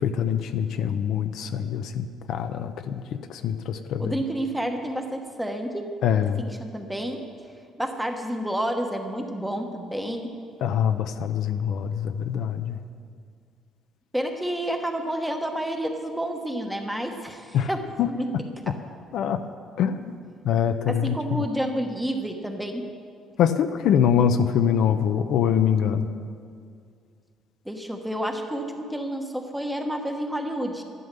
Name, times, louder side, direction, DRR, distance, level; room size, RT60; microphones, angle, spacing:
voice 1, 0.0-3.0 3.3-4.0 6.0-6.4 10.6-12.8 17.5-17.7 18.0-18.1 19.1-19.4 19.8-20.1 20.4-21.4 23.4-26.1, left 8 dB, 65° left, 8 dB, 0.6 m, -24 dB
voice 2, 4.0-5.9 6.5-7.3 7.8-10.3 14.1-18.3 18.7-18.8 20.9-22.9 27.6-30.8, right 1 dB, 5° right, 4 dB, 1.1 m, -30 dB
12.0 x 11.5 x 6.8 m, 2.2 s
cardioid pair, 150°, 0 cm